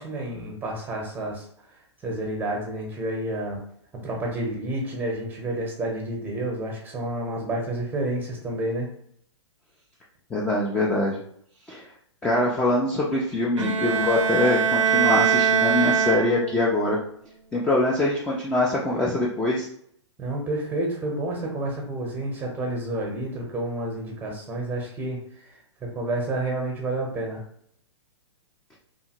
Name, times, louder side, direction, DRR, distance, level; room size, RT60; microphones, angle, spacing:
voice 1, 0.0-1.4 2.0-3.6 4.0-8.9 20.2-25.2 25.8-27.4, right 1 dB, 10° right, -1 dB, 0.8 m, -29 dB
voice 2, 10.3-11.2 11.7-11.9 12.2-17.0 17.5-19.7, left 2 dB, 5° left, -4 dB, 0.4 m, -23 dB
Bowed string instrument, 13.6-16.7, right 6 dB, 80° right, 0.4 m, -22 dB
2.6 x 2.5 x 2.8 m, 0.67 s
hypercardioid pair, 125°, 15 cm